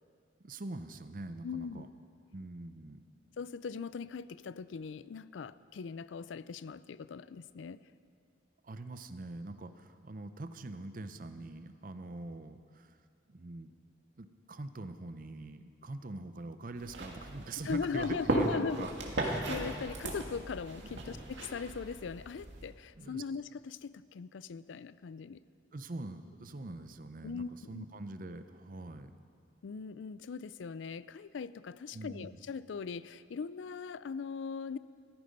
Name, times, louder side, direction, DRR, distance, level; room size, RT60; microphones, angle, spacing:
voice 1, 0.4-1.9 2.3-3.0 8.6-13.0 13.3-13.7 14.2-18.9 20.8-21.0 23.0-23.2 25.7-29.1 31.9-32.4, right 2 dB, 45° right, 10 dB, 0.6 m, -43 dB
voice 2, 1.4-1.9 3.4-7.8 17.6-18.9 19.2-25.4 27.2-27.9 29.6-34.8, left 5 dB, 80° left, 17 dB, 0.4 m, -40 dB
sound 1, 16.7-22.7, right 1 dB, 75° right, 2.0 m, -37 dB
14.5 x 14.0 x 5.3 m, 2.3 s
head